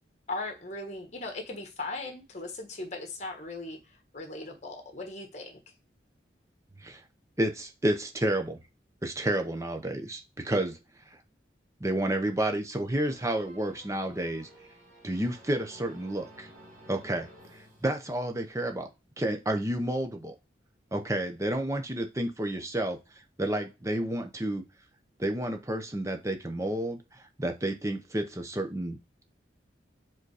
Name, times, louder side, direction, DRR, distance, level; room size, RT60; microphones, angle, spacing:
voice 1, 0.3-5.6, left 2 dB, 40° left, 3 dB, 1.4 m, -38 dB
voice 2, 7.4-8.6 9.0-11.2 11.8-14.5 15.0-16.5 16.9-18.9 19.2-20.3 20.9-24.6 25.2-29.0, right 1 dB, 15° right, 5 dB, 0.8 m, -31 dB
sound 1, 12.9-18.5, right 1 dB, 40° right, 2.6 m, -54 dB
5.2 x 3.9 x 4.8 m, 0.26 s
head